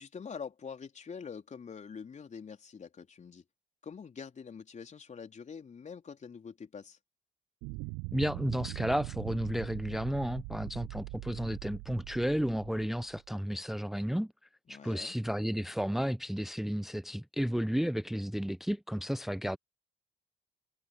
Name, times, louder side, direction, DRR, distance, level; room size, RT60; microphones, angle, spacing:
voice 1, 0.0-3.4 3.8-7.0 14.7-15.1, left 6 dB, 40° left, 4.0 m, -45 dB
sound 1, 7.6-13.4, right 29 dB, 70° right, 0.8 m, -42 dB
voice 2, 8.1-14.3 14.7-19.6, equal, ahead, 0.9 m, -32 dB
figure-of-eight pair, 45°, 19 cm